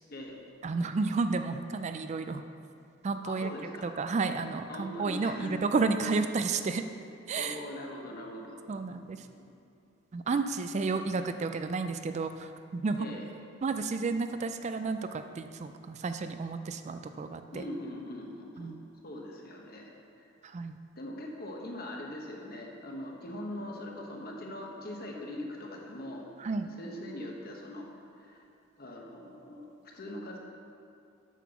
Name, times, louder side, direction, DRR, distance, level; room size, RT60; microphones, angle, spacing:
voice 1, 0.6-2.4 3.0-3.5 3.8-6.9 7.3-7.6 8.7-9.3 10.1-13.1 13.6-17.6 18.6-18.7 20.4-20.8 26.4-26.7, right 4 dB, 35° right, 8 dB, 0.3 m, -31 dB
voice 2, 3.2-3.9 4.7-5.6 7.4-8.6 8.9-9.5 12.9-13.3 17.5-18.7 19.0-19.9 20.2-20.3 21.0-26.2 26.8-27.9 28.2-28.4 28.8-30.4, left 1 dB, 50° left, 0 dB, 1.2 m, -41 dB
8.2 x 6.0 x 5.9 m, 2.6 s
head